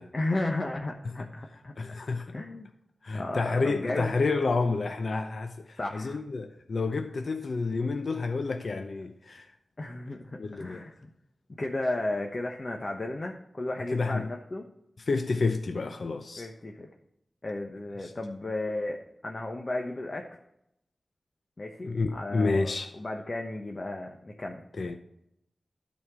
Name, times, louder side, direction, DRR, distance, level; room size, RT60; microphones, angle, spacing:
voice 1, 0.1-1.7 2.3-2.7 3.1-4.1 5.8-6.2 9.8-11.1 11.5-14.6 16.4-16.9 17.4-20.4 21.6-24.6, left 2 dB, 45° left, 1.1 m, -34 dB
voice 2, 1.8-2.3 3.0-9.5 10.4-10.8 13.9-14.3 15.0-16.5 21.8-22.9 24.8-25.0, left 3 dB, 70° left, 0.7 m, -29 dB
13.0 x 4.3 x 6.2 m
cardioid pair, 55°, 0 cm